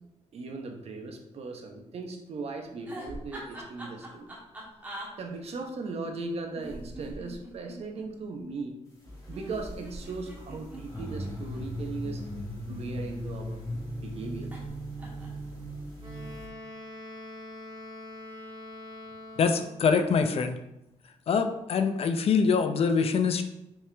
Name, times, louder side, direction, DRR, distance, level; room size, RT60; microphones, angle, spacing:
voice 1, 0.3-4.3 5.2-8.8 9.3-12.2 12.7-13.6 14.0-14.5, right 3 dB, 60° right, 3 dB, 0.9 m, -38 dB
sound 1, 2.9-5.1 6.5-8.0 9.3-11.6 12.5-13.5 14.5-14.7 15.0-15.4, right 1 dB, 15° right, 1.5 m, -43 dB
sound 2, 9.0-16.5, equal, 25° left, 1.8 m, -38 dB
Wind instrument woodwind instrument, 16.0-19.9, left 1 dB, 35° right, 2.1 m, -44 dB
voice 2, 19.4-20.6 21.3-23.4, left 5 dB, 55° left, 8 dB, 0.5 m, -24 dB
6.2 x 4.7 x 3.4 m, 0.85 s
wide cardioid pair, 180°, 12 cm